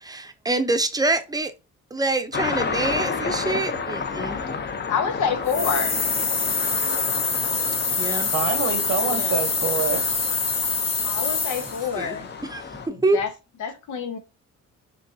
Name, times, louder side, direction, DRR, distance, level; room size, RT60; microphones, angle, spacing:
voice 1, 0.5-1.5 1.9-4.4 8.0-8.3 12.0-12.2 12.5-12.6 13.0-13.2, right 2 dB, 10° right, 0.7 m, -25 dB
sound 1, 2.3-12.9, left 5 dB, 35° left, 0.8 m, -31 dB
voice 2, 4.9-6.0 9.0-9.4 11.0-12.3 12.9-13.3 13.6-14.2, left 6 dB, 80° left, 1.1 m, -27 dB
sound 2, 5.5-11.9, left 5 dB, 55° left, 1.9 m, -25 dB
voice 3, 8.3-10.3 10.7-10.8, right 6 dB, 90° right, 1.0 m, -26 dB
5.2 x 3.3 x 2.7 m
cardioid pair, 90°, 30 cm